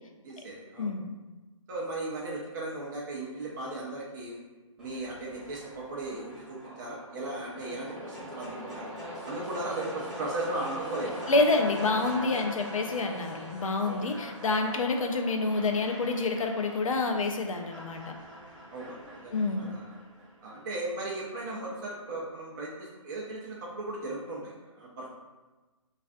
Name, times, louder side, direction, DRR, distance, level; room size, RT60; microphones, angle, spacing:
voice 1, 0.2-0.9 1.7-4.4 4.8-8.9 9.2-11.2 13.8-14.1 18.7-19.9 20.4-25.1, right 2 dB, 35° right, -5 dB, 0.4 m, -37 dB
voice 2, 0.8-1.2 11.3-18.2 19.3-19.7, left 3 dB, 75° left, 4 dB, 0.4 m, -28 dB
sound 1, 4.8-20.8, equal, 5° right, 0.7 m, -42 dB
2.4 x 2.4 x 2.4 m, 1.2 s
figure-of-eight pair, 145°, 17 cm